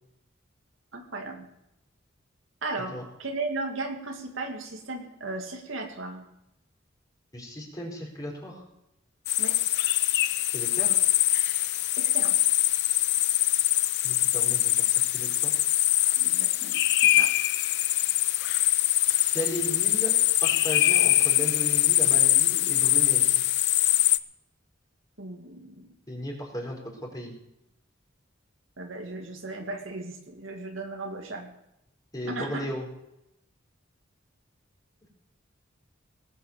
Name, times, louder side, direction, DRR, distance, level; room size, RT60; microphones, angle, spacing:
voice 1, 0.9-1.5 2.6-6.3 9.4-9.6 12.0-12.4 16.2-17.3 25.2-25.9 28.8-31.5 32.3-32.7, right 2 dB, 80° right, 3 dB, 2.3 m, -36 dB
voice 2, 7.3-8.6 10.5-11.0 14.0-15.5 19.3-23.4 26.1-27.3 32.1-32.9, equal, 20° left, -1 dB, 4.2 m, -36 dB
sound 1, 9.3-24.2, left 15 dB, 60° left, 0.5 m, -23 dB
19.0 x 8.4 x 6.7 m, 0.85 s
head